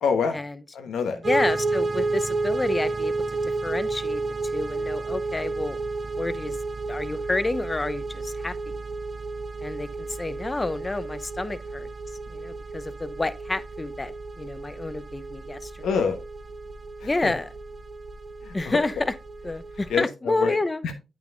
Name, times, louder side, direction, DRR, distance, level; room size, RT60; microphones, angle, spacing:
voice 1, 0.0-0.4 0.7-1.2 15.8-16.2 17.0-17.3 18.4-18.8 19.9-20.5 20.8-20.9, left 6 dB, 90° left, 1.1 m, -26 dB
voice 2, 1.2-3.1 3.4-4.2 4.5-5.8 6.1-6.6 6.9-8.5 9.6-11.9 12.3-15.9 17.0-17.5 18.5-19.1 19.4-20.8, left 2 dB, 30° left, 0.7 m, -29 dB
sound 1, 1.2-20.0, right 3 dB, 45° right, 0.7 m, -31 dB
8.7 x 6.2 x 2.5 m
cardioid pair, 55°, 0 cm